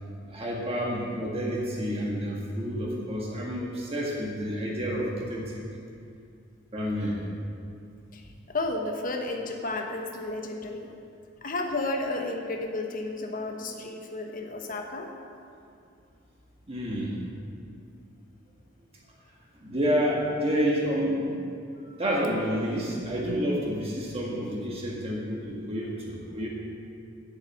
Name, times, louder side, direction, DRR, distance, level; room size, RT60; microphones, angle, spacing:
voice 1, 0.0-5.5 6.7-7.2 16.7-17.2 19.6-21.4 22.0-26.5, equal, 30° right, -3 dB, 1.5 m, -29 dB
voice 2, 8.5-10.9 11.4-15.1 21.8-22.0, left 2 dB, 45° left, 3 dB, 1.1 m, -32 dB
8.0 x 7.3 x 8.4 m, 2.5 s
head